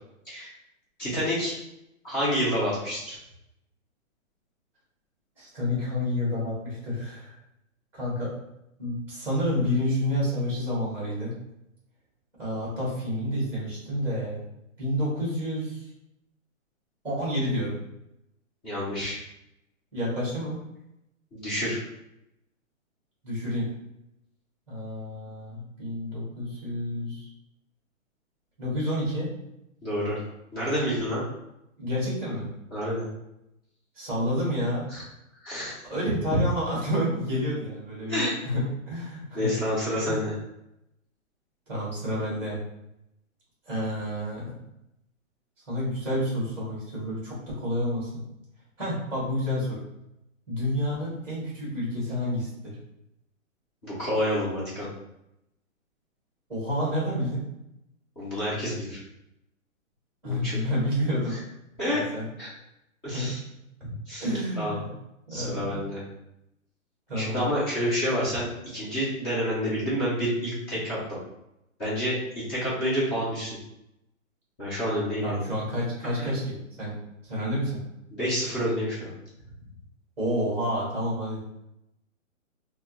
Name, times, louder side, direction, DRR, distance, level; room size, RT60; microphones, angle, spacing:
voice 1, 1.0-1.5 2.0-3.2 18.6-19.2 21.3-21.8 29.8-30.2 30.5-31.2 32.7-33.1 34.9-35.0 35.4-35.7 38.1-38.3 39.3-40.3 53.8-54.9 58.2-59.0 60.2-60.6 61.3-61.4 61.8-62.0 62.4-62.5 63.0-63.4 63.8-64.3 64.6-64.8 65.3-66.0 67.1-71.0 71.8-73.6 74.6-75.4 76.0-76.3 78.1-79.1, equal, 20° left, -9 dB, 1.0 m, -28 dB
voice 2, 5.4-7.4 7.9-8.3 8.8-11.4 12.4-14.4 14.8-15.9 17.0-17.7 19.9-20.6 23.2-23.7 24.7-27.3 28.6-29.3 31.8-32.5 33.9-34.9 35.9-39.5 40.0-40.2 41.7-42.6 43.7-44.5 45.7-48.2 48.8-49.8 50.5-52.7 56.5-57.4 60.2-61.4 61.9-62.3 63.0-63.3 64.2-64.9 65.3-65.9 67.1-67.4 75.2-77.0 77.2-77.8 80.2-81.4, equal, 5° right, -6 dB, 1.2 m, -29 dB
4.1 x 2.0 x 2.5 m, 0.85 s
hypercardioid pair, 155°, 41 cm